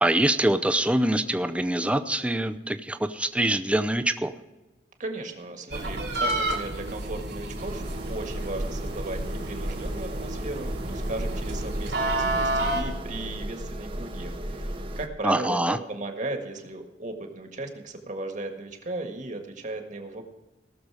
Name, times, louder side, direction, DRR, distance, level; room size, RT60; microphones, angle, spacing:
voice 1, 0.0-4.3 15.2-15.8, right 1 dB, 5° right, 9 dB, 0.6 m, -24 dB
voice 2, 5.0-20.3, right 2 dB, 45° right, 5 dB, 1.7 m, -36 dB
sound 1, 5.7-12.8, right 1 dB, 80° right, 3.4 m, -30 dB
sound 2, 7.6-15.1, equal, 30° right, 1.0 m, -34 dB
18.5 x 6.8 x 4.8 m, 1.1 s
head